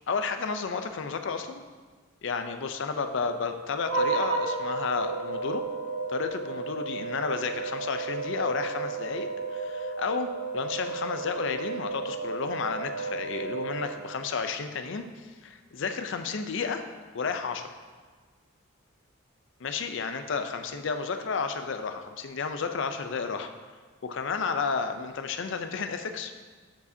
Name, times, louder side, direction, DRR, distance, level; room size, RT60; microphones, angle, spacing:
voice 1, 0.1-1.6 2.2-5.6 6.1-10.3 10.5-16.8 17.1-17.7 19.6-23.5 24.0-26.3, left 5 dB, 60° left, 8 dB, 0.5 m, -32 dB
sound 1, 3.8-14.4, right 3 dB, 70° right, 0.9 m, -33 dB
11.5 x 5.0 x 2.7 m, 1.5 s
head